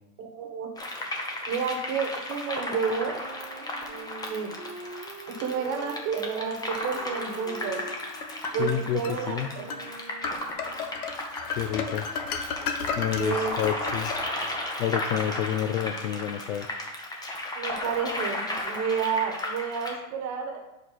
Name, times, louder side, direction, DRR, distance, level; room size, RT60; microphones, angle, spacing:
voice 1, 0.2-0.7 1.5-3.2 3.9-4.5 5.3-7.8 8.5-9.6 12.9-13.5 17.5-20.6, right 6 dB, 35° right, 4 dB, 1.2 m, -31 dB
sound 1, 0.8-20.0, left 1 dB, 10° left, 0.6 m, -35 dB
Wind instrument woodwind instrument, 2.5-11.1, right 4 dB, 15° right, 1.3 m, -45 dB
sound 2, 7.9-9.2 9.7-9.9 10.2-14.7, left 5 dB, 85° left, 0.9 m, -34 dB
voice 2, 8.6-9.5 11.5-12.1 13.0-14.1 14.8-16.7, left 11 dB, 55° left, 8 dB, 0.5 m, -29 dB
5.0 x 4.7 x 5.8 m, 0.93 s
supercardioid pair, 140°, 43 cm